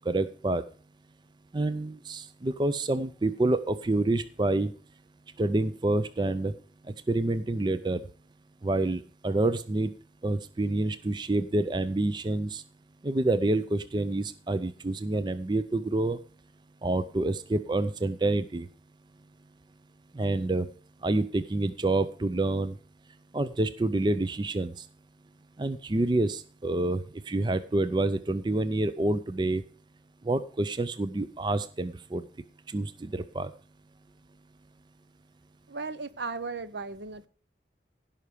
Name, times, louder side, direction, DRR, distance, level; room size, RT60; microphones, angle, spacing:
voice 1, 0.0-0.6 1.5-4.7 5.4-6.5 7.1-8.0 8.6-9.9 10.2-12.6 13.0-16.2 16.8-18.7 20.1-20.7 21.0-22.8 23.3-24.9 25.6-29.6 30.2-32.3 32.7-33.5, right 2 dB, 25° right, 13 dB, 0.4 m, -28 dB
voice 2, 35.7-37.3, right 4 dB, 70° right, 14 dB, 0.7 m, -36 dB
16.0 x 5.7 x 4.9 m, 0.42 s
head